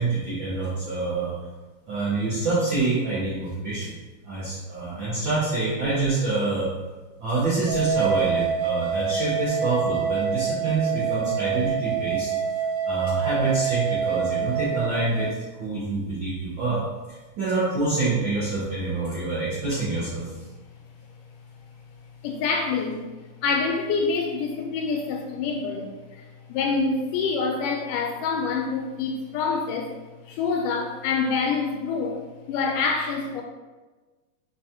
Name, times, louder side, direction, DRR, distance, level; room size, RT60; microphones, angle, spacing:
voice 1, 0.0-1.3 1.9-3.9 4.2-6.7 7.2-12.3 12.8-16.8 17.1-20.3, right 3 dB, 70° right, -10 dB, 1.1 m, -26 dB
sound 1, 7.7-15.3, right 7 dB, 90° right, 2.3 m, -26 dB
voice 2, 22.2-23.1 23.4-29.9 30.3-33.4, left 4 dB, 85° left, 2 dB, 2.1 m, -26 dB
4.7 x 4.0 x 2.8 m, 1.2 s
omnidirectional pair, 3.8 m